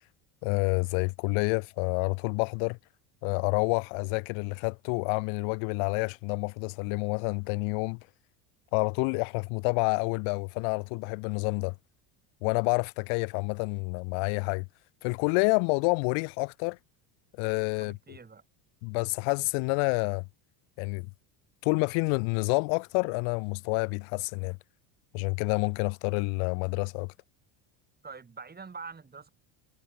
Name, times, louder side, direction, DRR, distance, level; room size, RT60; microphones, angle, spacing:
voice 1, 0.4-2.8 3.2-8.0 8.7-11.7 12.4-14.6 15.0-16.8 17.4-17.9 18.8-20.2 20.8-21.1 21.6-24.6 25.1-27.1, left 36 dB, 75° left, 1.0 m, -28 dB
voice 2, 17.8-18.4 28.0-29.3, right 5 dB, 20° right, 6.4 m, -44 dB
cardioid pair, 130°, 49 cm